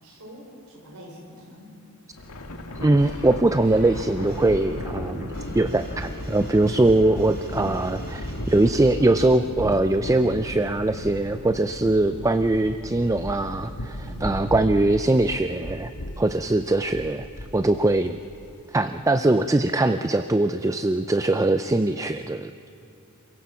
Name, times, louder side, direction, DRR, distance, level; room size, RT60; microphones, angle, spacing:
voice 1, 0.0-1.8 14.0-14.5, equal, 80° right, 0 dB, 5.2 m, -45 dB
Thunder, 2.1-18.7, left 1 dB, 80° left, 1.8 m, -36 dB
voice 2, 2.8-15.9 16.2-17.2 17.5-18.2 18.7-22.7, right 2 dB, 15° right, 10 dB, 0.4 m, -22 dB
sound 1, 3.0-9.3, equal, 50° right, 4.0 m, -41 dB
27.0 x 16.5 x 7.1 m, 2.7 s
head